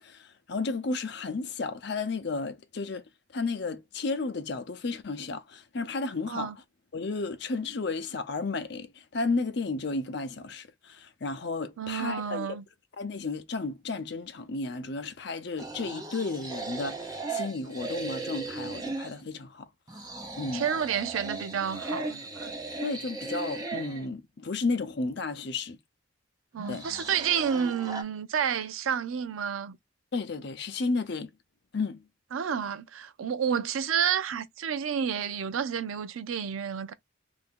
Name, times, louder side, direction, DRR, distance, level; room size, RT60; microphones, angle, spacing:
voice 1, 0.0-3.0 3.3-6.5 6.9-12.6 13.0-19.7 20.4-20.7 22.8-25.8 26.7-26.9 30.1-31.3 31.7-32.0, left 3 dB, 55° left, 0.6 m, -33 dB
voice 2, 11.8-12.6 20.5-22.5 26.5-29.8 32.3-36.9, right 7 dB, 85° right, 0.4 m, -30 dB
sound 1, 15.6-19.2 19.9-24.1 26.6-28.0, right 3 dB, 20° right, 0.6 m, -37 dB
2.7 x 2.6 x 3.6 m
head